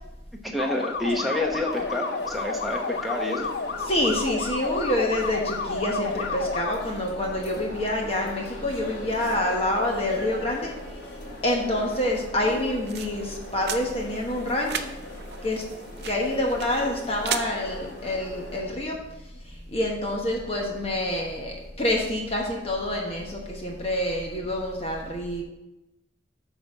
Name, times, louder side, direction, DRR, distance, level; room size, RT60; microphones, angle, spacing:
voice 1, 0.4-3.5, left 1 dB, ahead, -1 dB, 1.0 m, -28 dB
sound 1, 0.6-6.7, left 4 dB, 60° left, 0.5 m, -31 dB
sound 2, 1.7-18.6, left 1 dB, 85° left, 2.2 m, -41 dB
voice 2, 3.8-10.7 11.4-14.9 15.4-15.6 16.0-19.0 19.7-25.4, left 1 dB, 30° left, 0 dB, 1.1 m, -27 dB
sound 3, 12.4-17.4, right 8 dB, 60° right, 0.5 m, -37 dB
8.4 x 4.1 x 6.0 m, 0.99 s
head